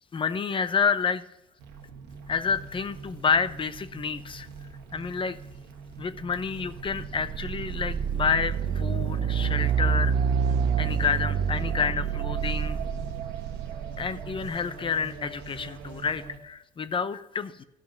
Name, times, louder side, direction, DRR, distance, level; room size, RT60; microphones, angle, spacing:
voice 1, 0.1-1.2 2.3-4.5 4.9-5.4 6.0-10.1 10.8-12.8 14.0-17.6, left 6 dB, 30° left, 13 dB, 0.7 m, -29 dB
sound 1, 1.6-16.4, right 6 dB, 85° right, 1.6 m, -42 dB
sound 2, 6.4-14.5, right 7 dB, 65° right, 0.8 m, -28 dB
13.0 x 5.5 x 5.7 m, 0.89 s
cardioid pair, 110°, 17 cm